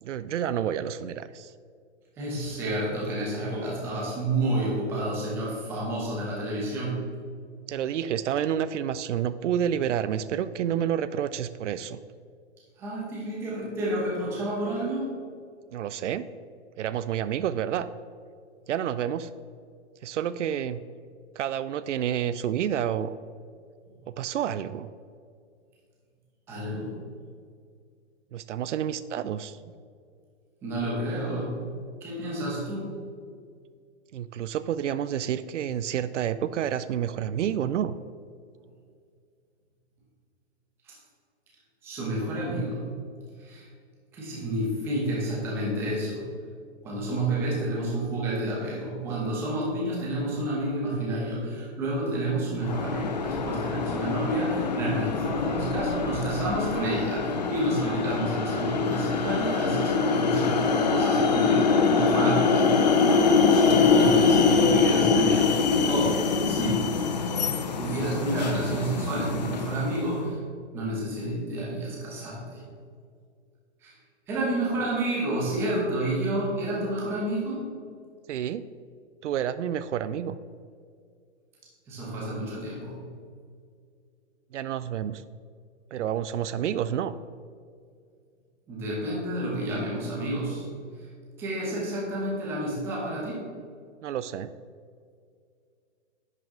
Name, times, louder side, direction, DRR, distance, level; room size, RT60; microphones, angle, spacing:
voice 1, 0.0-1.5 7.7-12.0 15.7-16.2 16.8-17.9 18.7-19.3 20.0-20.8 21.4-23.1 24.2-24.9 28.3-29.6 34.1-38.0 78.3-78.6 79.2-80.4 84.5-85.2 85.9-87.1 94.0-94.5, right 9 dB, 80° right, 14 dB, 0.5 m, -29 dB
voice 2, 2.2-7.0 12.8-15.1 26.5-26.9 30.6-31.7 32.0-33.0 40.8-41.0 41.8-42.9 43.4-43.7 44.1-46.3 46.8-62.6 63.5-65.5 65.9-66.8 67.8-70.4 70.7-72.6 73.8-74.0 74.3-77.6 81.9-83.0 88.7-90.7 91.0-91.1 91.4-93.4, right 1 dB, 5° right, -5 dB, 0.9 m, -30 dB
sound 1, 52.6-70.1, left 5 dB, 35° left, 0.5 m, -24 dB
10.5 x 5.9 x 3.7 m, 2.2 s
hypercardioid pair, 180°, 35 cm